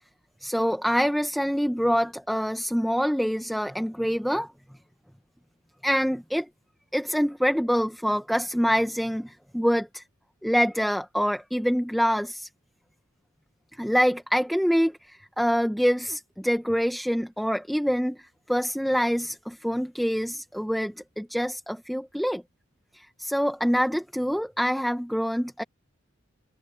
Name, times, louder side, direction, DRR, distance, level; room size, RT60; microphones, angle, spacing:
voice 1, 0.4-4.5 5.8-6.5 6.9-10.0 10.4-12.5 13.8-18.2 18.5-22.4 22.9-25.6, equal, ahead, 1.1 m, -25 dB
head